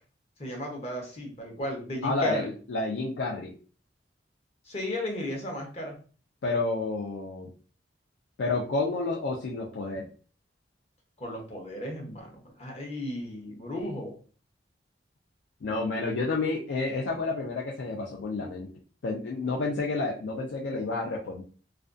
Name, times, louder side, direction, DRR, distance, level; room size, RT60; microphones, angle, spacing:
voice 1, 0.4-2.5 4.7-5.9 11.2-14.1, left 1 dB, 35° left, 0 dB, 0.7 m, -35 dB
voice 2, 2.0-3.5 6.4-7.5 8.4-10.1 15.6-18.7 19.0-21.4, left 3 dB, 85° left, -2 dB, 0.4 m, -30 dB
2.4 x 2.2 x 2.4 m, 0.40 s
head